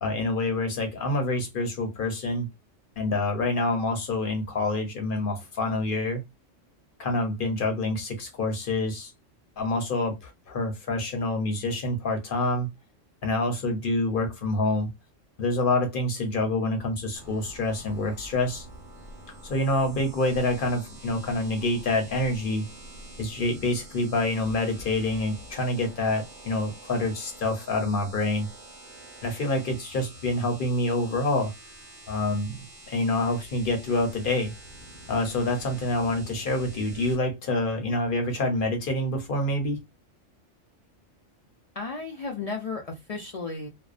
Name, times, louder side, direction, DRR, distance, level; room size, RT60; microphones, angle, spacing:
voice 1, 0.0-2.5 3.0-6.2 7.0-9.1 9.6-12.7 13.2-14.9 15.4-18.6 19.4-22.7 23.2-28.5 29.2-31.5 32.1-32.6 32.9-34.5 35.1-39.8, left 2 dB, 55° left, 0.7 m, -27 dB
sound 1, 17.2-37.2, right 1 dB, 75° right, 1.2 m, -46 dB
voice 2, 41.8-43.7, left 4 dB, 70° left, 0.3 m, -34 dB
2.5 x 2.1 x 2.4 m
omnidirectional pair, 1.2 m